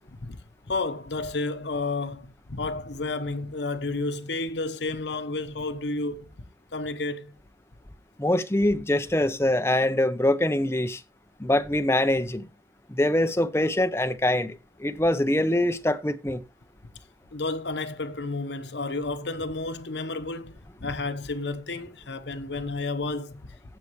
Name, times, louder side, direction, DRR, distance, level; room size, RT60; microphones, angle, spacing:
voice 1, 0.7-6.3 6.7-7.3 17.3-23.4, left 3 dB, 75° left, 1.0 m, -31 dB
voice 2, 8.2-11.0 11.4-12.5 12.9-16.4, left 1 dB, 15° left, 0.7 m, -24 dB
15.0 x 6.8 x 3.1 m
head